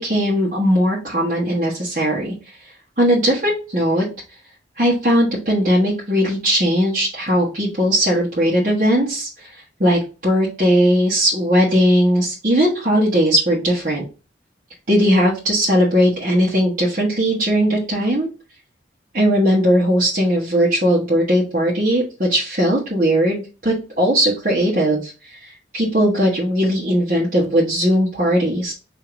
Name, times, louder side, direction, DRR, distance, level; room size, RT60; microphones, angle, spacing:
voice 1, 0.0-2.3 3.0-4.1 4.8-14.0 14.9-18.3 19.1-28.7, equal, 45° right, -6 dB, 1.2 m, -18 dB
4.6 x 2.8 x 3.8 m, 0.33 s
head